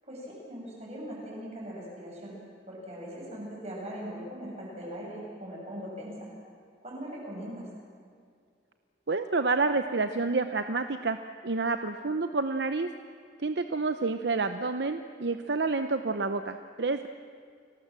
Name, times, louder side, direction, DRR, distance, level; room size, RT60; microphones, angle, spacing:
voice 1, 0.0-2.4 2.6-6.3 6.8-7.7, equal, 35° right, -3 dB, 7.9 m, -40 dB
voice 2, 9.1-11.2 11.4-12.9 13.4-17.1, right 3 dB, 65° right, 8 dB, 0.8 m, -29 dB
29.5 x 19.0 x 7.6 m, 2.2 s
head